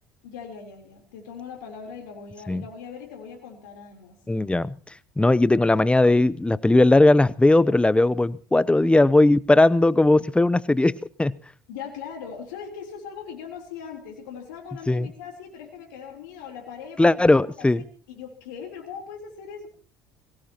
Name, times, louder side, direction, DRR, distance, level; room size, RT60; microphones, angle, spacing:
voice 1, 0.2-4.2 11.7-19.7, left 7 dB, 85° left, 1 dB, 3.7 m, -40 dB
voice 2, 4.3-4.7 5.2-10.9 11.2-11.3 14.9-15.1 17.0-17.8, left 2 dB, 10° left, 19 dB, 0.7 m, -18 dB
23.0 x 17.5 x 3.0 m, 0.42 s
hypercardioid pair, 70°, 10 cm